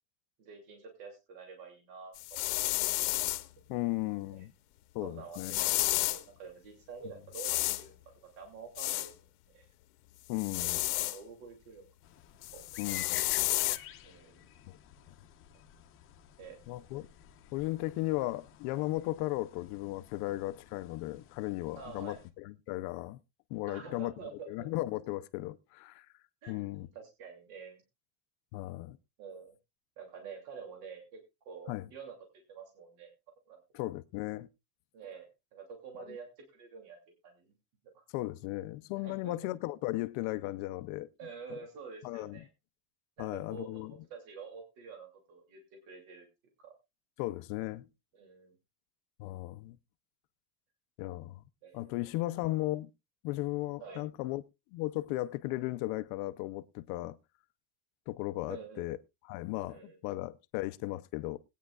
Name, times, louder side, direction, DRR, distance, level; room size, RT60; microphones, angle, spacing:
voice 1, 0.4-2.4 2.7-3.0 4.3-4.5 5.0-8.0 8.3-9.7 10.6-11.9 12.5-12.6 14.0-14.5 16.4-16.6 21.8-22.2 23.7-24.5 26.4-27.8 29.2-29.5 30.0-31.2 31.4-32.2 32.5-33.1 33.5-33.6 34.9-37.0 37.2-37.5 37.9-38.0 39.0-39.3 41.2-42.5 43.2-46.3 46.6-46.7 48.1-48.5 51.6-52.3 53.8-54.0 58.5-59.0 59.7-60.2, right 6 dB, 50° right, 2.9 m, -48 dB
sound 1, 2.2-3.4 5.4-6.2 7.3-7.8 8.8-9.1 10.4-11.2 12.4-13.8, left 21 dB, 80° left, 1.0 m, -31 dB
voice 2, 3.7-4.5 4.9-5.6 10.3-10.8 12.8-13.2 14.7-14.8 16.7-17.1 17.5-23.2 23.5-24.1 24.5-26.1 26.5-26.9 28.5-29.0 31.7-31.9 33.7-34.5 36.1-36.2 38.1-41.1 41.5-41.7 42.0-42.4 43.2-43.9 47.2-47.9 49.2-49.8 51.0-51.4 51.7-52.9 53.2-54.4 54.7-57.2 58.1-59.0 59.3-61.4, left 18 dB, 50° left, 0.6 m, -36 dB
sound 2, 12.0-22.3, left 11 dB, 30° left, 0.9 m, -53 dB
20.5 x 9.2 x 2.4 m
cardioid pair, 175°, 45 cm